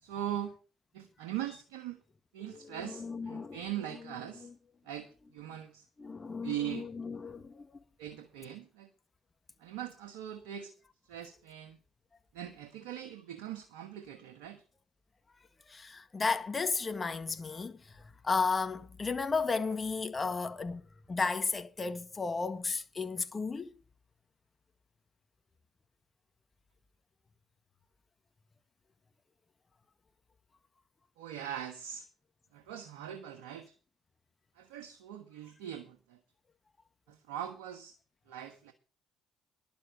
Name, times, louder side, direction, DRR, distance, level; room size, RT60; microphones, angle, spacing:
voice 1, 0.0-0.5 0.9-2.0 2.3-4.5 4.8-5.8 6.4-6.9 8.0-8.9 9.6-10.7 11.0-11.8 12.3-14.6 19.6-19.7 31.2-32.1 32.5-33.7 34.6-36.2 37.1-38.0 38.3-38.7, right 11 dB, 85° right, 1.2 m, -41 dB
voice 2, 2.4-3.6 3.9-4.5 6.0-7.8 15.7-20.8 21.1-23.8, left 4 dB, 30° left, 1.7 m, -34 dB
11.5 x 7.5 x 6.6 m
hypercardioid pair, 55°, 0 cm